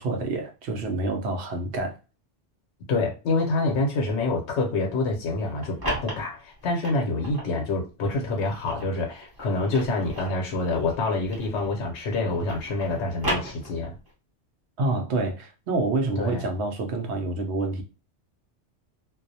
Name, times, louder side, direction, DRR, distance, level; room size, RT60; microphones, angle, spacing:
voice 1, 0.0-2.0 14.8-17.8, right 2 dB, 70° right, 0.8 m, -27 dB
voice 2, 2.9-14.0 16.2-16.5, left 2 dB, 75° left, 0.9 m, -27 dB
sound 1, 5.4-7.5 8.1-11.8 12.1-14.1, equal, 20° right, 0.8 m, -35 dB
2.4 x 2.0 x 2.6 m
omnidirectional pair, 1.2 m